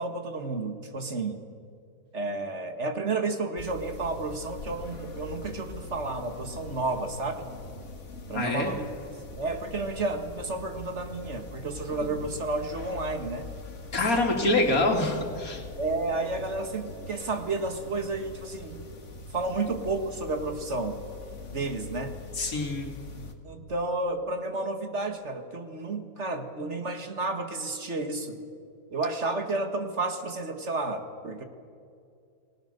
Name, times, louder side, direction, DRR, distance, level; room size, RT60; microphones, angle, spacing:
voice 1, 0.0-1.4 2.1-7.5 8.3-8.9 9.3-13.5 15.8-18.9 19.3-21.0 21.5-22.1 23.4-28.4 28.9-31.4, right 3 dB, 50° right, 6 dB, 2.0 m, -31 dB
sound 1, 3.6-23.3, left 3 dB, 55° left, 2.1 m, -43 dB
voice 2, 8.3-8.7 13.9-15.6 22.4-22.9, left 2 dB, 75° left, 2 dB, 3.1 m, -25 dB
29.5 x 19.5 x 6.8 m, 2.4 s
omnidirectional pair, 1.5 m